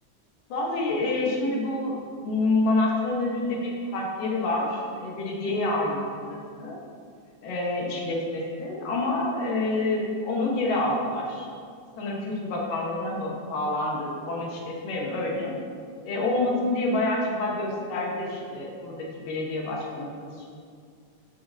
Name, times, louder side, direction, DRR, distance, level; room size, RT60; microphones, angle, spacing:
voice 1, 0.5-6.8 7.4-11.5 12.0-15.6 16.0-20.5, left 2 dB, 85° left, -2 dB, 3.1 m, -28 dB
13.5 x 8.3 x 2.9 m, 2.2 s
omnidirectional pair, 3.7 m